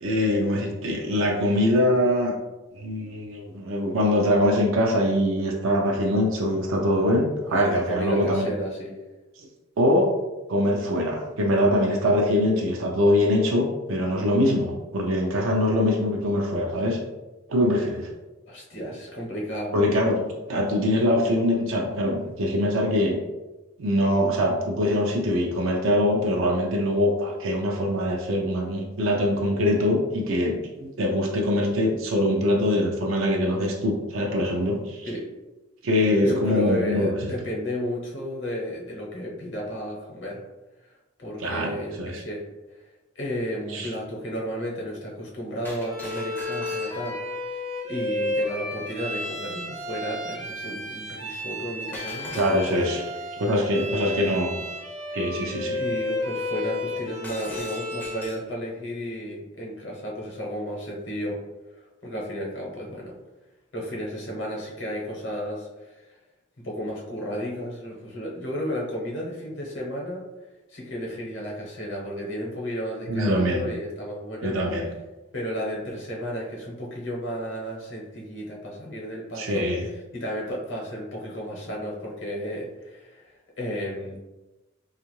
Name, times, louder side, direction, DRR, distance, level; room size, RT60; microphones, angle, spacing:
voice 1, 0.0-2.3 2.8-8.5 9.4-9.5 9.8-10.1 10.5-17.0 17.5-18.1 19.7-23.2 23.8-35.1 35.8-37.3 41.4-42.2 43.7-43.9 52.3-53.0 53.4-54.6 55.1-55.8 73.1-73.6 74.4-74.9 79.4-79.9, left 1 dB, 80° right, 0 dB, 0.5 m, -23 dB
voice 2, 7.4-9.0 15.5-15.8 18.5-19.9 35.1-35.3 36.2-40.4 41.2-42.5 43.2-47.6 47.9-52.7 53.6-54.4 55.1-55.2 55.7-61.4 62.0-63.2 63.7-66.1 66.6-70.2 70.7-74.6 75.3-79.7 80.1-84.2, equal, 60° left, -3 dB, 0.8 m, -33 dB
Shatter, 45.6-47.3 51.9-53.0 57.2-58.5, left 1 dB, 10° left, 0.4 m, -41 dB
Bowed string instrument, 45.8-58.4, left 1 dB, 60° right, 1.0 m, -32 dB
2.5 x 2.4 x 3.0 m, 1.1 s
head